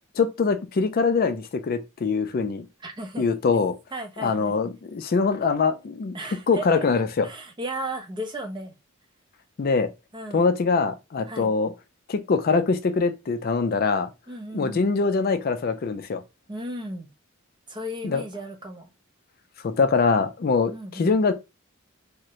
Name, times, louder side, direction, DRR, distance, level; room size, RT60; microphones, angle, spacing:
voice 1, 0.2-2.7 3.2-3.8 4.2-6.2 6.5-7.3 9.6-9.9 10.3-11.7 12.1-14.1 14.5-16.2 18.0-18.2 19.6-21.3, left 4 dB, 45° left, 0.4 m, -23 dB
voice 2, 2.8-3.3 3.9-4.6 6.1-6.9 7.2-8.7 10.1-10.5 11.3-11.5 14.3-14.9 16.5-17.1 17.7-18.9 20.5-21.1, right 1 dB, 20° right, 0.5 m, -35 dB
3.5 x 2.1 x 2.8 m
head